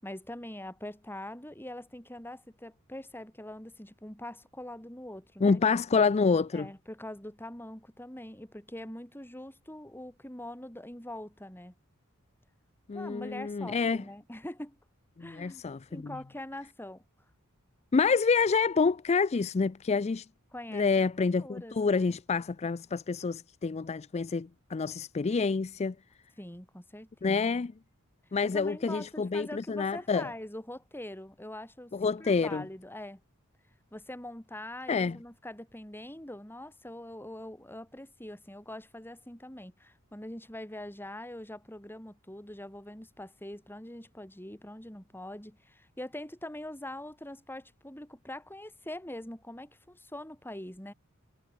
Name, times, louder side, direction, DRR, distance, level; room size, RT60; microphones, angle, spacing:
voice 1, 0.0-5.6 6.5-11.7 12.9-14.8 15.2-15.6 15.9-17.0 20.5-20.9 21.2-22.2 26.4-27.4 28.4-31.9 32.2-33.2 33.9-50.9, left 1 dB, 10° left, 5.9 m, -43 dB
voice 2, 5.4-6.7 12.9-14.0 15.2-16.1 17.9-20.3 20.7-25.9 27.2-27.7 28.3-30.3 31.9-32.7 34.9-35.2, left 4 dB, 30° left, 0.4 m, -27 dB
head